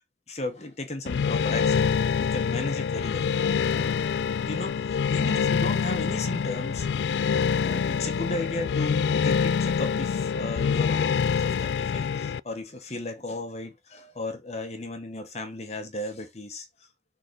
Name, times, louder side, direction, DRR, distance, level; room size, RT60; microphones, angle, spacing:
voice 1, 0.3-3.3 3.6-4.0 4.5-6.9 7.6-16.7, left 2 dB, 40° left, 1.0 m, -35 dB
sound 1, 1.1-12.4, left 6 dB, 75° left, 0.3 m, -25 dB
6.5 x 3.7 x 5.0 m
head